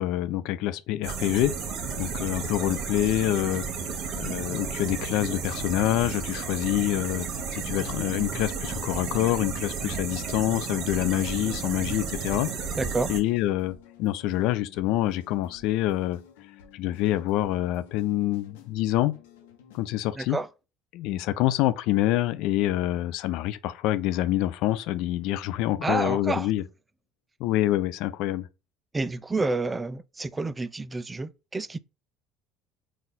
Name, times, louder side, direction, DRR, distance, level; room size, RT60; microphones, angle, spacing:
voice 1, 0.0-1.6 2.0-3.7 3.9-7.3 7.5-12.5 13.1-16.2 16.7-19.2 19.7-20.4 20.9-26.6 27.4-28.5, left 14 dB, 70° left, 0.4 m, -26 dB
sound 1, 1.0-13.2, right 5 dB, 60° right, 1.2 m, -33 dB
sound 2, 7.1-20.1, left 9 dB, 85° left, 1.0 m, -53 dB
voice 2, 12.8-13.1 20.2-20.5 25.8-26.5 28.9-31.8, right 3 dB, 20° right, 0.3 m, -29 dB
4.1 x 2.4 x 4.0 m
hypercardioid pair, 80°, 0 cm